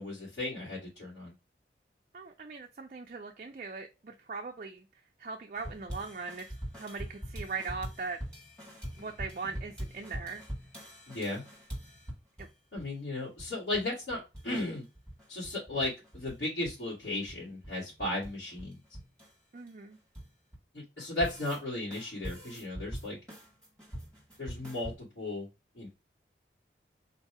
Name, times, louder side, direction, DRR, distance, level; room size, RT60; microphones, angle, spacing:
voice 1, 0.0-1.3 11.1-11.4 12.7-14.8 15.3-18.8 20.7-23.2 24.4-25.5 25.7-25.9, left 2 dB, 80° left, 2.4 m, -35 dB
voice 2, 2.1-4.9 5.2-6.5 6.8-8.2 9.0-10.4 12.4-12.5 19.5-20.0, right 4 dB, 45° right, 0.4 m, -40 dB
sound 1, 5.5-12.5 12.8-12.9 13.1-13.8 14.1-14.5 14.7-16.4 16.6-20.6 21.0-21.6 21.9-24.9, equal, 5° left, 1.6 m, -43 dB
4.0 x 2.7 x 4.7 m
head